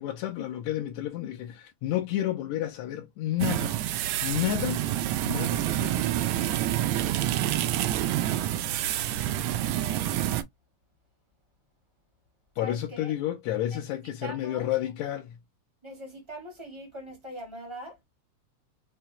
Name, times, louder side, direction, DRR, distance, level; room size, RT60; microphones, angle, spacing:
voice 1, 0.0-4.8 5.2-6.1 12.6-15.4, left 12 dB, 75° left, 1.8 m, -31 dB
sound 1, 3.4-10.4, right 12 dB, 80° right, 1.7 m, -27 dB
voice 2, 9.6-10.1 12.6-13.1 13.7-13.8 14.2-14.7 15.8-18.0, equal, 25° right, 0.5 m, -42 dB
5.7 x 2.1 x 2.7 m
omnidirectional pair, 3.4 m